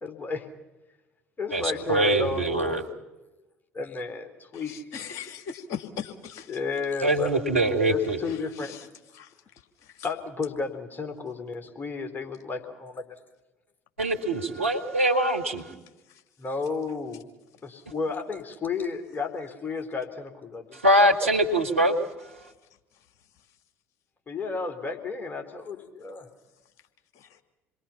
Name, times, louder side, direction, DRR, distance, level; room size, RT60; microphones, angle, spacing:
voice 1, 0.0-0.5 1.4-2.8 3.7-4.8 6.5-7.4 7.9-8.8 10.0-13.2 16.4-17.3 17.6-20.8 21.2-21.3 24.3-26.3, left 4 dB, 30° left, 5 dB, 3.4 m, -33 dB
voice 2, 1.5-2.8 7.0-8.2 14.0-15.7 20.7-22.0, right 1 dB, 85° right, 1 dB, 1.9 m, -23 dB
voice 3, 4.7-6.5 9.2-9.3, left 7 dB, 55° left, 6 dB, 2.2 m, -37 dB
27.5 x 22.0 x 5.8 m, 1.1 s
figure-of-eight pair, 60°, 7 cm